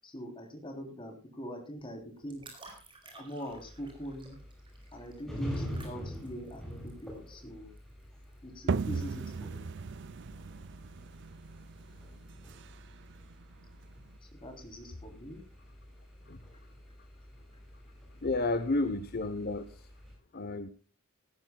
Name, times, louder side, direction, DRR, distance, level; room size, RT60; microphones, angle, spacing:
voice 1, 0.0-2.4 3.1-4.4 4.9-7.7 8.4-9.7 14.2-15.4, equal, 25° left, 4 dB, 3.5 m, -43 dB
sound 1, 1.8-8.5, right 2 dB, 25° right, 4.7 m, -54 dB
sound 2, 3.5-20.1, equal, ahead, 5.9 m, -46 dB
sound 3, 8.7-14.1, right 5 dB, 55° right, 0.4 m, -37 dB
voice 2, 18.2-19.9 20.3-20.7, left 2 dB, 45° left, 11 dB, 0.8 m, -31 dB
17.5 x 14.0 x 2.3 m, 0.39 s
head